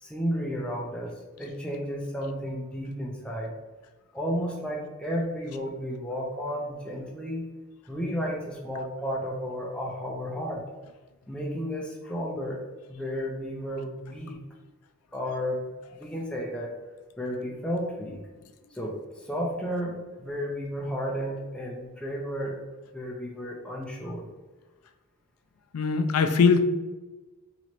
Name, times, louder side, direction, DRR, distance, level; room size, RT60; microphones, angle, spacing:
voice 1, 0.0-3.5 4.1-7.5 7.9-10.6 11.3-12.6 12.9-14.4 15.1-15.7 16.0-16.7 17.2-18.2 18.7-22.6 22.9-24.3, equal, 5° left, -3 dB, 0.5 m, -32 dB
voice 2, 25.7-26.6, left 5 dB, 80° left, 9 dB, 0.4 m, -21 dB
2.9 x 2.9 x 4.3 m, 1.2 s
head